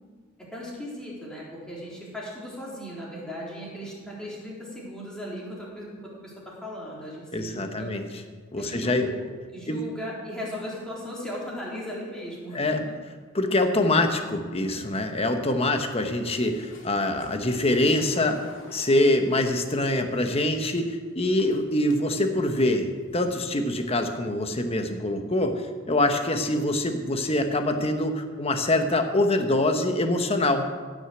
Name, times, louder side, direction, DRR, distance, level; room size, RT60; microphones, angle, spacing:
voice 1, 0.5-5.9 6.2-7.9 8.6-9.2 9.5-12.7, equal, 5° left, -6 dB, 3.6 m, -37 dB
voice 2, 7.3-8.0 8.5-9.1 9.7-9.8 12.5-12.8 13.3-18.4 18.7-30.6, left 1 dB, 30° left, 6 dB, 1.1 m, -24 dB
sound 1, 16.4-19.4 20.4-20.5 21.4-22.0 22.5-22.6 23.0-23.4 24.1-24.2, left 1 dB, 65° left, 2.2 m, -47 dB
16.0 x 6.4 x 7.9 m, 1.5 s
head